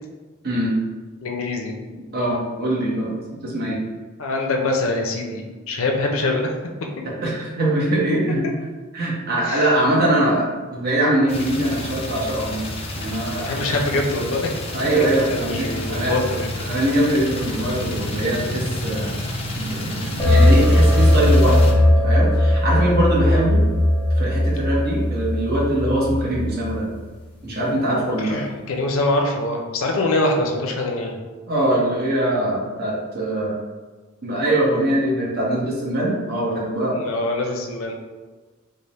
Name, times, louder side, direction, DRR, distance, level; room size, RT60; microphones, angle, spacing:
voice 1, 0.4-0.8 2.1-3.8 7.2-8.5 8.9-12.6 12.9-13.8 14.7-16.1 16.7-19.2 19.6-23.6 24.2-26.9 27.4-28.4 31.5-33.5 34.2-37.0, right 1 dB, 50° right, -4 dB, 1.0 m, -22 dB
voice 2, 1.2-1.7 4.2-6.5 9.4-9.6 13.4-14.5 15.3-16.5 28.2-31.2 36.9-37.9, left 2 dB, 75° left, 2 dB, 0.5 m, -24 dB
sound 1, 11.3-21.7, left 1 dB, 30° left, 0.5 m, -30 dB
sound 2, 20.2-26.7, left 1 dB, 10° left, 0.8 m, -17 dB
3.3 x 2.1 x 4.0 m, 1.3 s
head